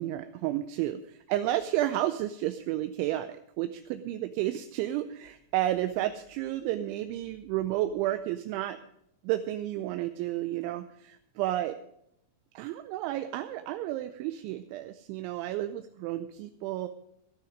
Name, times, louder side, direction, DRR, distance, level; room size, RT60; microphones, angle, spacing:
voice 1, 0.0-8.8 9.2-11.8 12.6-16.9, right 14 dB, 80° right, 9 dB, 2.9 m, -31 dB
13.0 x 12.5 x 5.0 m, 0.77 s
omnidirectional pair, 5.6 m